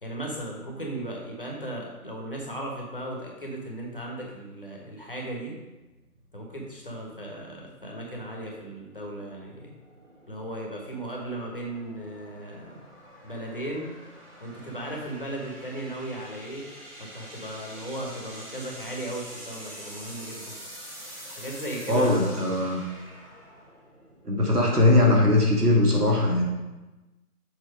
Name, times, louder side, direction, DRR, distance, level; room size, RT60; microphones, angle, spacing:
voice 1, 0.0-5.6 6.3-9.7 10.3-12.8 13.2-13.9 14.4-16.7 17.0-20.5 21.3-22.4, right 1 dB, 35° left, -1 dB, 1.3 m, -36 dB
sound 1, 5.9-24.9, equal, 15° right, 1.8 m, -46 dB
voice 2, 21.9-22.8 24.2-26.4, left 2 dB, 75° right, -1 dB, 2.0 m, -20 dB
6.9 x 4.0 x 4.9 m, 1.1 s
figure-of-eight pair, 165°, 46 cm